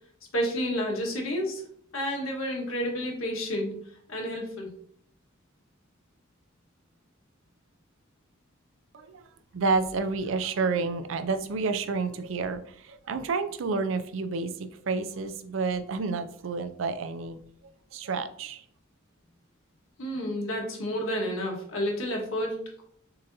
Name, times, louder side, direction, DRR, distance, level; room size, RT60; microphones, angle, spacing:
voice 1, 0.3-1.6 1.9-3.7 4.1-4.7 20.0-22.8, equal, 80° left, 0 dB, 1.3 m, -30 dB
voice 2, 9.5-17.4 17.9-18.6, right 4 dB, 70° right, 10 dB, 0.4 m, -30 dB
6.5 x 2.8 x 2.6 m, 0.63 s
head